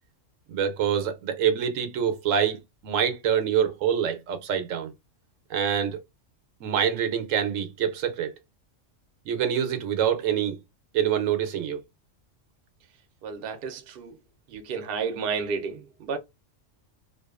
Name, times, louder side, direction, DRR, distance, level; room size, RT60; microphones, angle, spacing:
voice 1, 0.5-4.9 5.5-6.0 6.6-8.3 9.3-10.6 10.9-11.8, right 8 dB, 85° right, 1.0 m, -26 dB
voice 2, 13.2-14.2 14.5-16.2, right 5 dB, 60° right, 0.7 m, -31 dB
2.5 x 2.3 x 2.3 m
omnidirectional pair, 1.3 m